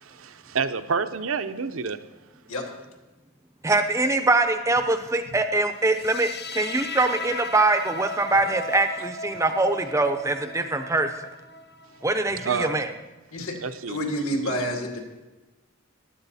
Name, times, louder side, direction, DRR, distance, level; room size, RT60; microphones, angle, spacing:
voice 1, 0.0-2.0 12.4-13.0 13.6-14.0 14.4-14.8, right 5 dB, 65° right, 9 dB, 0.7 m, -29 dB
voice 2, 3.6-11.1 12.0-12.9, right 2 dB, 15° right, 7 dB, 0.6 m, -23 dB
sound 1, 5.9-12.9, left 2 dB, 45° left, 0.7 m, -37 dB
voice 3, 13.9-15.0, equal, 75° left, 1 dB, 2.4 m, -28 dB
15.0 x 11.0 x 4.2 m, 1.1 s
head